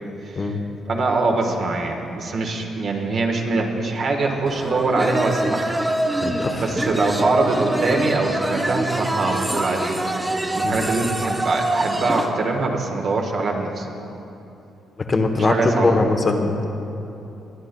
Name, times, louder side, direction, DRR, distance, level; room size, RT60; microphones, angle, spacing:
voice 1, 0.2-0.6 0.9-5.8 6.6-10.2 10.5-13.9 15.3-16.0, right 3 dB, 55° right, 2 dB, 1.3 m, -23 dB
sound 1, 4.5-12.3, right 1 dB, 15° right, 0.7 m, -25 dB
voice 2, 6.2-6.6 10.6-10.7 15.0-16.6, left 3 dB, 35° left, 3 dB, 0.9 m, -21 dB
22.0 x 9.6 x 2.2 m, 2.9 s
cardioid pair, 90°, 0 cm